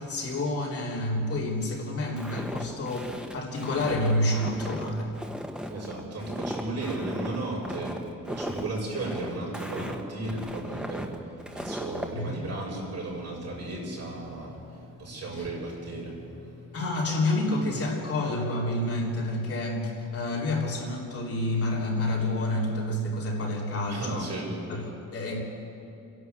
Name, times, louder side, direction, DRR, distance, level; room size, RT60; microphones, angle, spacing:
voice 1, 0.0-5.1 12.1-12.5 15.3-15.5 16.7-24.3 24.7-25.4, left 1 dB, 45° left, -2 dB, 3.3 m, -29 dB
Walk footsteps, 2.2-12.1, equal, 5° right, 1.3 m, -37 dB
voice 2, 5.7-8.0 8.3-11.1 11.5-16.8 23.8-24.6, right 2 dB, 50° right, -3 dB, 7.0 m, -35 dB
29.5 x 11.0 x 8.2 m, 2.8 s
cardioid pair, 165°, 33 cm